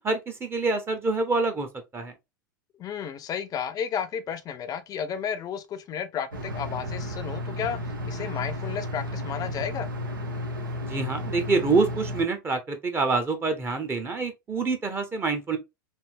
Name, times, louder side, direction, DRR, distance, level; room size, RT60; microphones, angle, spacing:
voice 1, 0.0-1.7 1.9-2.1 10.9-15.6, right 3 dB, 20° right, 0.8 m, -26 dB
voice 2, 2.8-9.9, left 8 dB, 35° left, 0.6 m, -33 dB
sound 1, 6.3-12.2, left 1 dB, 85° right, 1.0 m, -33 dB
3.4 x 2.7 x 2.6 m
hypercardioid pair, 90°, 11 cm